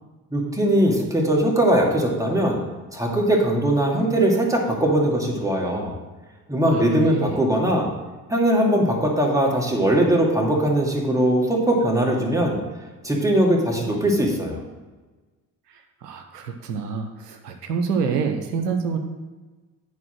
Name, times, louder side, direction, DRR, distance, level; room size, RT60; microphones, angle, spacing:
voice 1, 0.3-2.6 2.9-5.9 6.5-7.9 8.3-12.6 13.0-14.6, right 1 dB, 5° right, -1 dB, 2.4 m, -20 dB
voice 2, 6.7-7.4 15.7-19.0, right 5 dB, 80° right, 5 dB, 0.8 m, -27 dB
9.8 x 4.6 x 6.2 m, 1.3 s
figure-of-eight pair, 50°, 47 cm